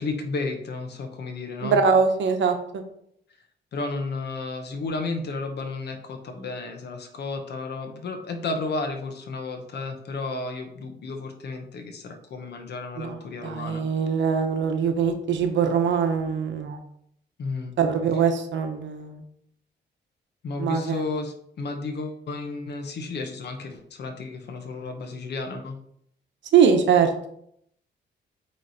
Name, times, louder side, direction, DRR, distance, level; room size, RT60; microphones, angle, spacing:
voice 1, 0.0-1.8 3.7-13.8 17.4-17.7 20.4-25.8, left 3 dB, 60° left, 5 dB, 1.1 m, -32 dB
voice 2, 1.6-2.8 13.0-16.8 17.8-19.2 20.6-21.0 26.5-27.3, right 6 dB, 75° right, 6 dB, 1.0 m, -22 dB
8.5 x 3.3 x 4.2 m, 0.70 s
wide cardioid pair, 165°, 19 cm